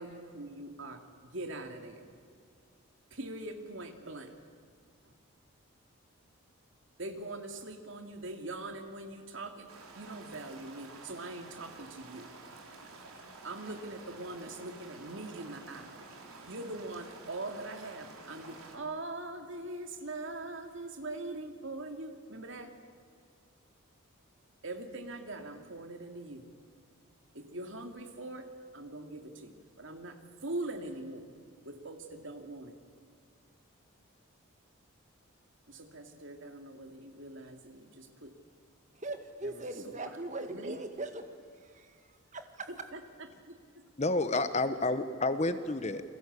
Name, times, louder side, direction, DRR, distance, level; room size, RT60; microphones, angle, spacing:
voice 1, 0.0-2.1 3.1-4.3 5.1-5.2 7.0-12.3 13.4-16.1 16.5-22.7 24.6-26.4 27.3-31.3 31.6-32.8 35.7-38.3 39.4-40.2 40.5-40.8 42.7-43.3 43.7-43.8, right 2 dB, 60° right, 5 dB, 2.6 m, -42 dB
sound 1, 9.7-18.8, right 3 dB, 80° right, 3.8 m, -51 dB
voice 2, 38.9-42.7, right 2 dB, 35° right, 7 dB, 1.9 m, -41 dB
voice 3, 44.0-46.0, left 2 dB, 30° left, 11 dB, 1.0 m, -30 dB
29.5 x 21.5 x 8.3 m, 2.1 s
head